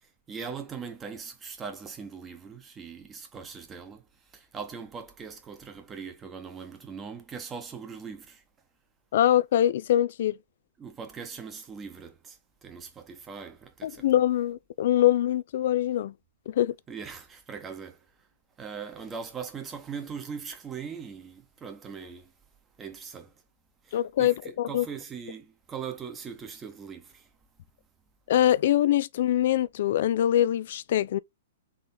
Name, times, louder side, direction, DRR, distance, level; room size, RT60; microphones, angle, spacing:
voice 1, 0.0-8.4 10.8-14.1 16.9-18.3 18.6-22.3 22.8-23.3 23.8-27.3, right 6 dB, 20° right, 1.1 m, -40 dB
voice 2, 9.1-10.3 13.8-16.1 16.5-16.7 23.9-24.9 28.3-31.2, left 12 dB, 60° left, 0.3 m, -24 dB
3.8 x 3.2 x 4.1 m
hypercardioid pair, 125°, 0 cm